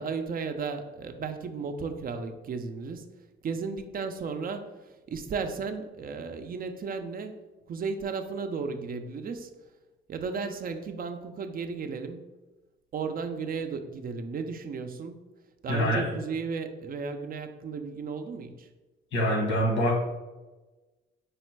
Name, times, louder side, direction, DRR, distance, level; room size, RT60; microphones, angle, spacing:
voice 1, 0.0-3.1 3.4-9.5 10.1-12.3 12.9-15.3 15.6-18.7, right 5 dB, 45° right, 7 dB, 0.5 m, -34 dB
voice 2, 15.7-16.1 19.1-20.0, equal, 75° left, -1 dB, 1.4 m, -25 dB
4.8 x 2.1 x 4.5 m, 1.2 s
cardioid pair, 90°, 20 cm